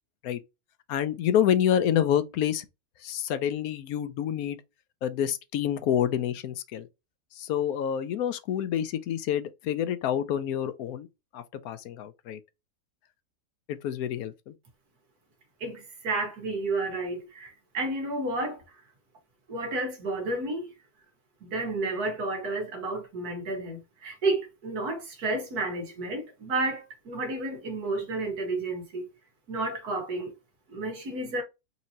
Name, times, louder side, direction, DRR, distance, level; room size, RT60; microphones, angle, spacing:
voice 1, 0.9-2.7 3.0-4.6 5.0-6.9 7.4-11.1 11.3-12.4 13.7-14.5, left 10 dB, 80° left, 1.1 m, -28 dB
voice 2, 15.6-18.8 19.5-20.7 21.4-29.1 29.5-30.3 30.7-31.4, right 2 dB, 85° right, 1.8 m, -31 dB
4.3 x 2.8 x 2.7 m
omnidirectional pair, 1.6 m